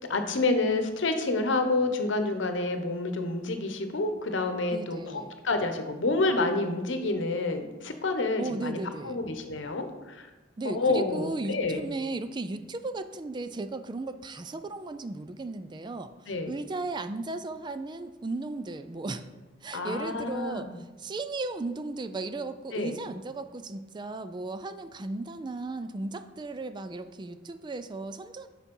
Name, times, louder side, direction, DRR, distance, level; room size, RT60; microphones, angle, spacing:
voice 1, 0.1-8.8 9.0-10.3 10.7-11.8 16.3-16.5 19.7-20.7 22.7-23.0, left 2 dB, 70° left, 7 dB, 0.9 m, -28 dB
voice 2, 4.7-5.4 8.4-9.2 10.6-19.3 19.6-28.5, right 2 dB, 25° right, 10 dB, 0.4 m, -36 dB
7.0 x 5.9 x 5.4 m, 1.2 s
head